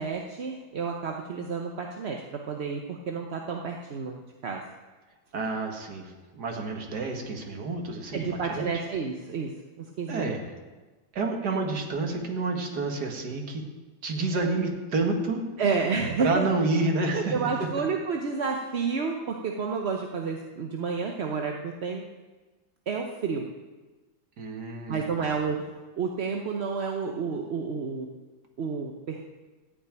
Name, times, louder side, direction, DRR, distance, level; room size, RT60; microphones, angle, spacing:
voice 1, 0.0-4.6 8.1-10.3 15.6-16.5 17.3-22.0 22.9-23.5 24.9-28.1 28.6-29.3, right 5 dB, 50° right, 1 dB, 0.9 m, -30 dB
voice 2, 5.3-8.7 10.1-10.4 11.1-13.6 14.0-15.5 16.2-17.7 24.4-25.0, right 3 dB, 65° right, 2 dB, 2.1 m, -29 dB
14.0 x 5.9 x 8.9 m, 1.3 s
omnidirectional pair, 1.9 m